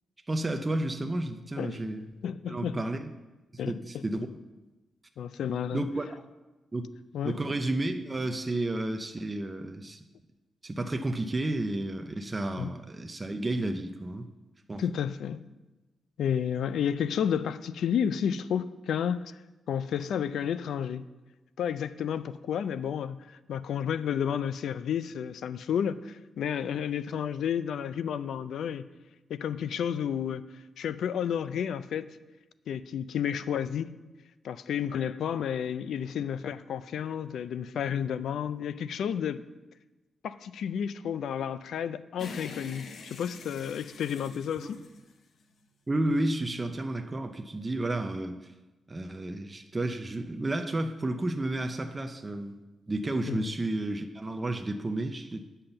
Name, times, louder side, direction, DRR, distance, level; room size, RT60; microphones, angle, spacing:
voice 1, 0.3-2.1 2.5-3.1 3.6-4.4 5.7-6.2 6.7-6.9 7.2-10.0 10.6-14.3 14.7-14.8 44.6-44.7 45.9-48.5 48.9-52.6 52.9-55.5, right 2 dB, 15° right, 6 dB, 0.5 m, -32 dB
voice 2, 2.2-2.8 3.6-4.0 5.2-5.8 7.1-7.4 12.6-12.7 14.8-15.4 16.2-19.4 19.7-21.1 21.6-28.9 29.3-30.4 30.8-32.1 32.7-33.9 34.4-39.4 40.2-44.8 53.3-53.5, left 8 dB, 75° left, 14 dB, 0.4 m, -31 dB
sound 1, 42.2-45.7, left 4 dB, 55° left, 0.9 m, -45 dB
8.6 x 5.6 x 7.9 m, 1.1 s
wide cardioid pair, 175°, 0 cm